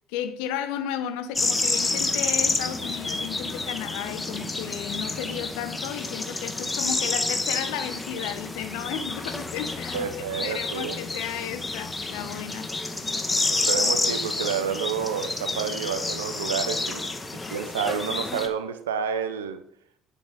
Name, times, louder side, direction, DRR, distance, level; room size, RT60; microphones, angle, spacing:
voice 1, 0.1-10.1 10.4-12.7, left 9 dB, 75° left, 1.1 m, -33 dB
sound 1, 1.4-18.5, left 2 dB, 20° left, 1.9 m, -29 dB
voice 2, 9.9-11.0 13.5-17.1 17.5-19.6, right 7 dB, 85° right, 0.7 m, -29 dB
9.9 x 8.3 x 3.9 m
hypercardioid pair, 55°, 0 cm